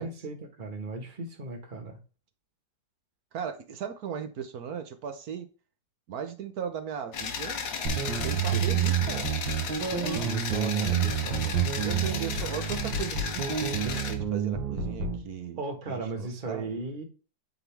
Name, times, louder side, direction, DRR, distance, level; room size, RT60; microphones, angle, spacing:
voice 1, 0.0-2.0 8.5-8.7 10.2-11.8 15.6-17.0, right 3 dB, 30° right, 1.5 m, -36 dB
voice 2, 3.3-5.5 6.1-7.6 8.1-9.3 9.9-10.3 11.8-13.6 13.8-15.6 15.9-16.7, right 7 dB, 60° right, 1.2 m, -37 dB
sound 1, 7.1-14.1, left 6 dB, 75° left, 1.8 m, -35 dB
sound 2, 7.9-15.2, right 8 dB, 80° right, 2.0 m, -29 dB
9.0 x 4.0 x 3.4 m
omnidirectional pair, 2.1 m